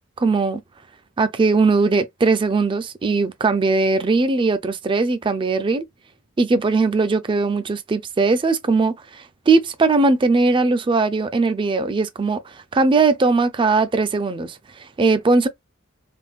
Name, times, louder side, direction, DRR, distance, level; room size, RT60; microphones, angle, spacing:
voice 1, 0.2-0.6 1.2-5.9 6.4-15.5, right 3 dB, 25° right, 0.4 m, -19 dB
3.5 x 2.2 x 2.4 m
head